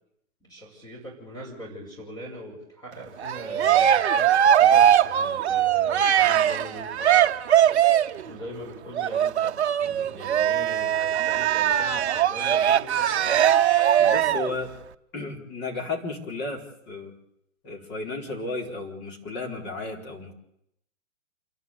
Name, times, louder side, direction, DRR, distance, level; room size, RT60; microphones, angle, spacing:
voice 1, 0.4-7.3 8.2-13.6, equal, 10° left, -1 dB, 5.7 m, -41 dB
Cheering, 3.2-8.2 9.0-14.5, right 10 dB, 50° right, 1.0 m, -21 dB
voice 2, 14.0-14.7 15.1-17.1 17.6-20.3, left 3 dB, 25° left, 2 dB, 4.4 m, -33 dB
28.0 x 11.5 x 8.4 m, 0.78 s
hypercardioid pair, 135°, 41 cm